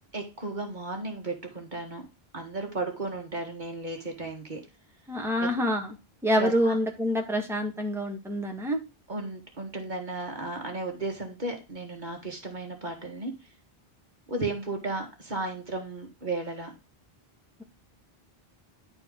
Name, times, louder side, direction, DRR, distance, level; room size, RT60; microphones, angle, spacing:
voice 1, 0.1-2.1 2.3-4.6 5.4-5.5 6.4-6.8 9.1-13.3 14.3-16.7, right 2 dB, 50° right, 2 dB, 1.8 m, -34 dB
voice 2, 5.1-6.0 6.2-8.8, equal, ahead, 1 dB, 1.7 m, -26 dB
11.0 x 4.5 x 3.8 m, 0.29 s
omnidirectional pair, 1.0 m